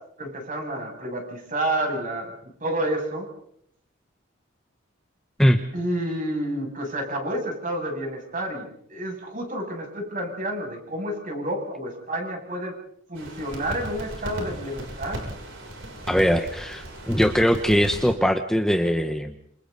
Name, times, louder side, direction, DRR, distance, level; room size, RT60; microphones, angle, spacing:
voice 1, 0.2-2.4 2.6-3.3 5.7-12.7 13.1-15.2, right 1 dB, 45° right, 1 dB, 7.2 m, -29 dB
sound 1, 13.2-18.1, right 1 dB, 75° right, 6.9 m, -36 dB
voice 2, 16.1-19.3, equal, 5° left, 6 dB, 1.0 m, -21 dB
27.5 x 27.5 x 4.1 m, 0.68 s
head